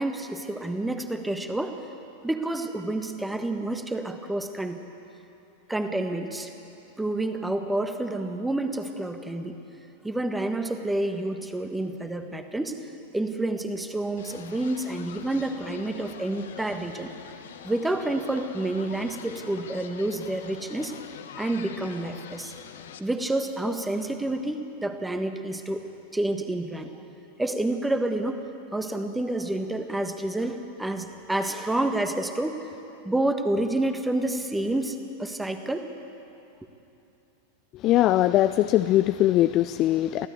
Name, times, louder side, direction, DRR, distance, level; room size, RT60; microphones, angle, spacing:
voice 1, 0.0-1.8 2.2-4.8 5.7-6.5 7.0-9.6 10.0-12.8 13.1-17.1 17.6-21.0 21.4-22.5 23.0-26.9 27.4-28.4 28.7-32.6 33.0-35.9, right 1 dB, 5° right, 7 dB, 1.5 m, -29 dB
sound 1, 14.2-23.0, left 8 dB, 60° left, 1.3 m, -44 dB
voice 2, 37.7-40.3, left 14 dB, 35° left, 11 dB, 0.4 m, -21 dB
23.5 x 16.5 x 8.1 m, 2.9 s
figure-of-eight pair, 90°, 0 cm